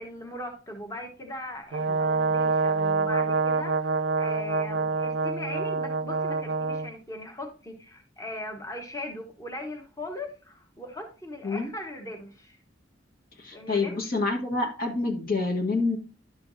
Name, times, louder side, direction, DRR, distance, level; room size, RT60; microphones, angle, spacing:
voice 1, 0.0-12.6 13.5-14.0, left 1 dB, 15° left, 2 dB, 1.2 m, -39 dB
Brass instrument, 1.7-6.9, right 4 dB, 65° right, 0.4 m, -26 dB
voice 2, 13.4-16.0, left 3 dB, 50° left, 2 dB, 1.3 m, -27 dB
11.0 x 6.8 x 2.7 m, 0.34 s
head